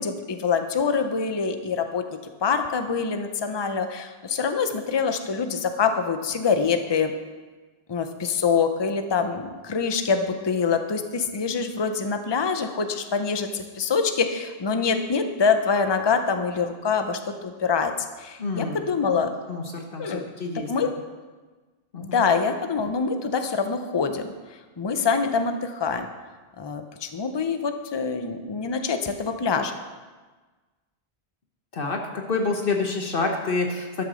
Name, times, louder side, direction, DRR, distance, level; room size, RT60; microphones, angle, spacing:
voice 1, 0.0-2.0 2.4-7.1 7.9-17.9 18.2-19.3 20.0-20.3 20.7-20.9 22.0-24.3 24.8-26.1 26.6-29.7, left 5 dB, 30° left, 7 dB, 0.7 m, -25 dB
voice 2, 18.4-18.8 19.5-20.9 21.9-22.2 31.7-34.0, left 3 dB, 60° left, 3 dB, 1.2 m, -28 dB
12.0 x 7.1 x 6.3 m, 1.3 s
omnidirectional pair, 1.1 m